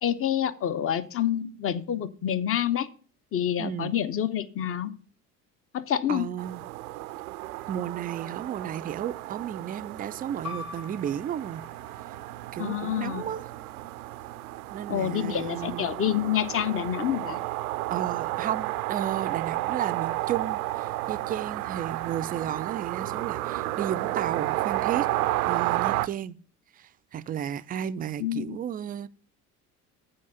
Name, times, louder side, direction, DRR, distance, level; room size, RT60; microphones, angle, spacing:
voice 1, 0.0-2.9 3.3-4.9 5.7-6.3 12.6-13.2 14.9-17.4 28.2-28.6, left 10 dB, 30° left, 0.7 m, -27 dB
voice 2, 3.6-3.9 6.1-6.6 7.7-11.6 12.5-13.4 14.7-15.9 17.9-25.1 25.5-26.4 26.8-29.1, right 10 dB, 20° right, 0.4 m, -33 dB
sound 1, 6.4-26.1, right 17 dB, 70° right, 0.5 m, -32 dB
sound 2, 10.4-15.6, left 3 dB, 85° left, 2.0 m, -46 dB
8.5 x 4.7 x 6.8 m
figure-of-eight pair, 60°, 45 cm